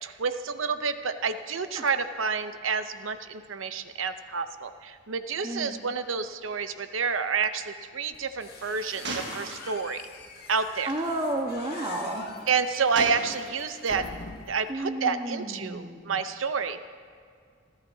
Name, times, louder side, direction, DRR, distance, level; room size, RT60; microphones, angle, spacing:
voice 1, 0.0-10.0 10.5-10.9 12.5-14.1 14.5-16.9, right 5 dB, 85° right, 10 dB, 0.7 m, -29 dB
voice 2, 5.4-5.7 10.8-12.3 14.7-16.1, right 1 dB, 30° right, 0 dB, 1.2 m, -32 dB
Gunshot gunfire, 6.7-6.8 7.0-7.2 9.0-10.0 10.8-11.0 12.9-13.9, right 2 dB, 65° right, 1.6 m, -37 dB
sound 1, 8.1-14.7, left 3 dB, 55° left, 1.6 m, -45 dB
28.5 x 12.0 x 2.8 m, 2.2 s
head